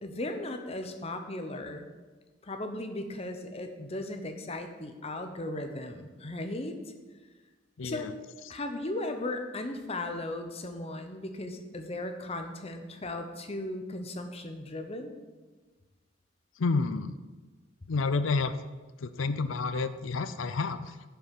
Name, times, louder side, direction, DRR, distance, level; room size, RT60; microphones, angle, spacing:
voice 1, 0.0-1.9 2.4-6.8 7.8-8.1 8.5-15.1, left 2 dB, 30° left, 6 dB, 0.9 m, -36 dB
voice 2, 7.8-8.1 16.6-17.1 17.9-18.6 19.0-21.1, left 4 dB, 85° left, 12 dB, 0.6 m, -29 dB
10.0 x 5.8 x 6.9 m, 1.3 s
head